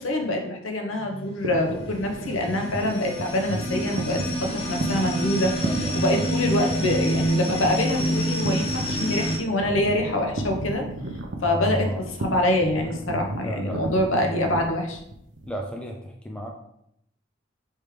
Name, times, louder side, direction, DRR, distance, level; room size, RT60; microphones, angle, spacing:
voice 1, 0.0-5.6 6.0-10.9 11.4-11.9 12.2-15.0, left 1 dB, 80° left, 3 dB, 0.8 m, -25 dB
sound 1, 0.9-9.4, equal, 30° left, 0.7 m, -28 dB
sound 2, 1.4-15.5, right 1 dB, 65° right, 0.6 m, -33 dB
voice 2, 5.2-6.2 11.4-12.1 13.3-14.5 15.5-16.5, equal, 5° left, 1 dB, 0.4 m, -33 dB
3.4 x 3.2 x 4.8 m, 0.75 s
head